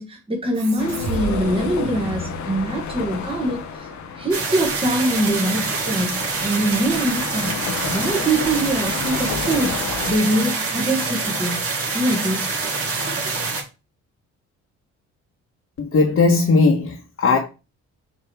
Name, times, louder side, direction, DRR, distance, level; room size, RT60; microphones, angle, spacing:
voice 1, 0.0-3.9 4.2-7.6 7.9-9.8 10.1-11.7 11.9-12.5, right 1 dB, 15° right, 1.6 m, -23 dB
sound 1, 0.5-3.6, right 2 dB, 65° right, 3.1 m, -33 dB
sound 2, 0.8-10.2, left 6 dB, 70° left, 1.1 m, -31 dB
sound 3, 4.3-13.6, right 4 dB, 50° right, 2.4 m, -26 dB
voice 2, 15.8-17.4, left 3 dB, 50° left, 1.4 m, -17 dB
6.9 x 3.3 x 4.7 m
cardioid pair, 90°, 30 cm